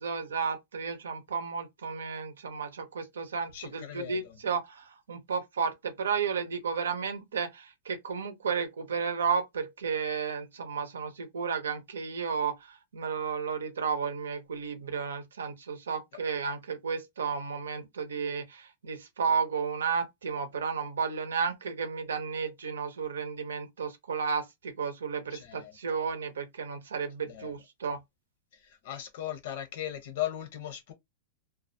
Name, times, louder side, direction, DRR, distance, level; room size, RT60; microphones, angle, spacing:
voice 1, 0.0-28.0, right 6 dB, 90° right, 0.6 m, -33 dB
voice 2, 3.5-4.3 25.3-25.7 27.3-27.5 28.8-30.9, left 12 dB, 65° left, 0.7 m, -37 dB
2.3 x 2.1 x 2.5 m
hypercardioid pair, 120°, 0 cm